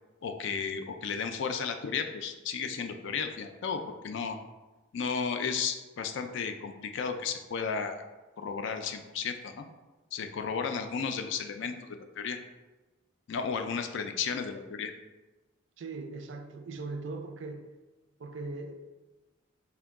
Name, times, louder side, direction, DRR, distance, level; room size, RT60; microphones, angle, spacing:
voice 1, 0.2-4.4 4.9-8.0 8.4-9.7 10.1-12.4 13.3-14.9, left 6 dB, 60° left, 7 dB, 0.3 m, -34 dB
voice 2, 15.8-17.7 18.2-18.7, right 3 dB, 65° right, 5 dB, 0.4 m, -39 dB
4.4 x 2.2 x 3.5 m, 1.1 s
head